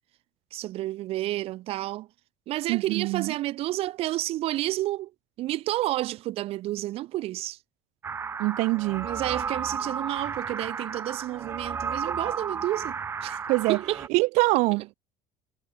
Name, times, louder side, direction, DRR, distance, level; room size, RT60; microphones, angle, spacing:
voice 1, 0.5-2.1 2.5-5.1 5.4-7.6 9.0-12.9 13.2-13.4 13.7-14.1, right 16 dB, 45° right, 1.4 m, -30 dB
voice 2, 2.7-3.3 8.4-9.1 13.5-13.8 14.1-14.9, right 24 dB, 65° right, 0.7 m, -24 dB
sound 1, 8.0-14.1, right 6 dB, 20° right, 2.0 m, -33 dB
cardioid pair, 170°, 13 cm